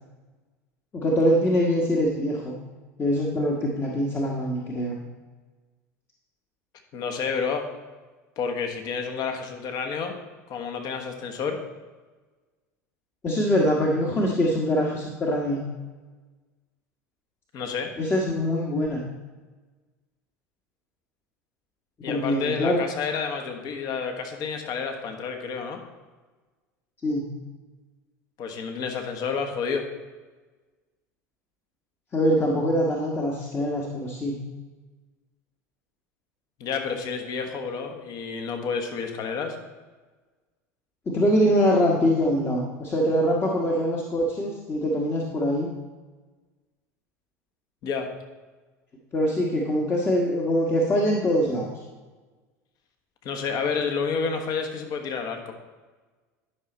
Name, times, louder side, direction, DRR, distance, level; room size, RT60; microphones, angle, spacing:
voice 1, 0.9-2.6 3.0-5.0 13.2-15.6 18.0-19.0 22.1-22.9 27.0-27.2 32.1-34.4 41.1-45.7 49.1-51.8, equal, 30° left, -2 dB, 1.3 m, -23 dB
voice 2, 6.9-7.7 8.4-10.2 10.5-11.6 17.5-17.9 22.0-25.8 28.4-29.8 36.6-39.6 47.8-48.1 53.2-55.5, left 5 dB, 45° left, 4 dB, 1.3 m, -30 dB
11.0 x 5.8 x 4.2 m, 1.3 s
figure-of-eight pair, 75°, 8 cm